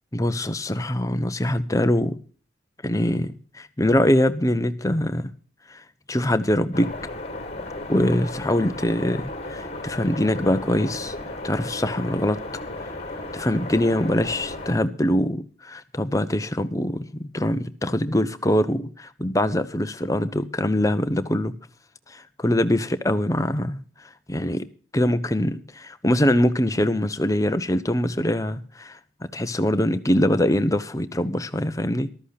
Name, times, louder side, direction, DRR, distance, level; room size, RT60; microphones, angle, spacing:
voice 1, 0.1-2.2 2.8-5.3 5.7-5.8 6.1-6.9 7.9-11.1 11.4-12.4 13.3-21.5 22.1-23.8 24.3-24.7 24.9-32.1, left 1 dB, 15° left, 0.9 m, -23 dB
sound 1, 6.7-14.8, left 2 dB, 30° left, 2.0 m, -35 dB
14.0 x 13.0 x 4.1 m
head